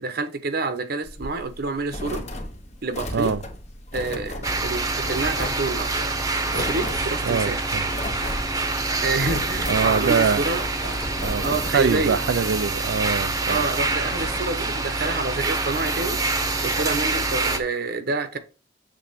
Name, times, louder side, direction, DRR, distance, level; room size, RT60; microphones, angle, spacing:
voice 1, 0.0-2.2 2.8-3.3 3.9-6.1 6.5-7.7 9.0-10.6 11.4-12.2 13.5-16.2 16.6-18.4, right 3 dB, 60° right, 0.9 m, -28 dB
sound 1, 1.0-14.4, left 1 dB, 35° left, 1.1 m, -37 dB
sound 2, 4.4-17.6, right 3 dB, 20° right, 0.9 m, -26 dB
voice 2, 7.2-7.9 9.7-10.5 10.8-11.4 11.7-13.6, right 5 dB, 80° right, 0.4 m, -24 dB
7.6 x 3.7 x 5.6 m
head